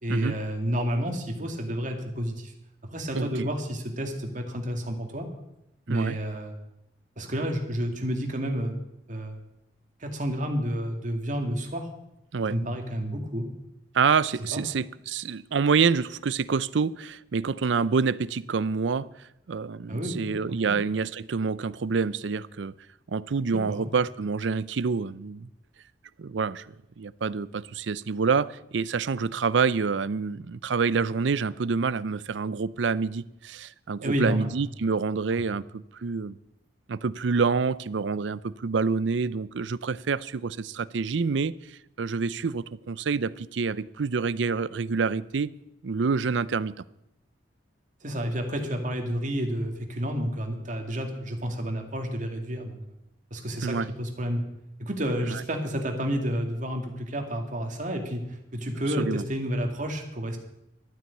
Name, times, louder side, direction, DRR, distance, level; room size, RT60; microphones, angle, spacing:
voice 1, 0.0-2.5 2.8-5.3 5.9-6.5 7.2-9.4 10.0-11.9 12.5-13.5 14.5-14.6 19.9-20.3 20.7-20.8 23.5-23.9 34.0-34.5 48.0-52.8 53.3-54.4 54.8-58.2 58.5-60.4, equal, 45° right, 2.3 m, -30 dB
voice 2, 3.1-3.5 5.9-6.2 12.3-12.6 13.9-19.1 19.5-22.7 23.1-25.5 26.2-26.7 27.0-36.4 36.9-45.5 45.8-46.7 53.6-53.9 55.2-55.4 59.0-59.2, right 5 dB, 85° right, 0.5 m, -27 dB
12.5 x 9.3 x 8.4 m
head